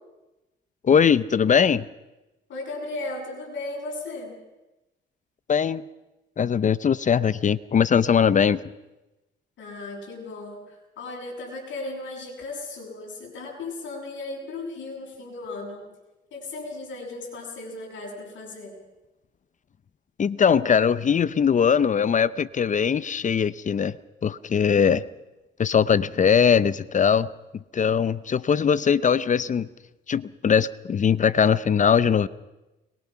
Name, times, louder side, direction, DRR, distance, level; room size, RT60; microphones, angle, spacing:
voice 1, 0.8-1.8 5.5-5.8 6.4-8.6 20.2-24.0 24.2-25.0 25.6-27.3 27.7-29.7 30.1-32.3, left 7 dB, 40° left, 17 dB, 0.7 m, -20 dB
voice 2, 2.5-4.4 9.6-15.9 16.3-18.8, left 2 dB, 70° left, -1 dB, 7.9 m, -36 dB
22.0 x 22.0 x 5.8 m, 1.0 s
cardioid pair, 90°, 20 cm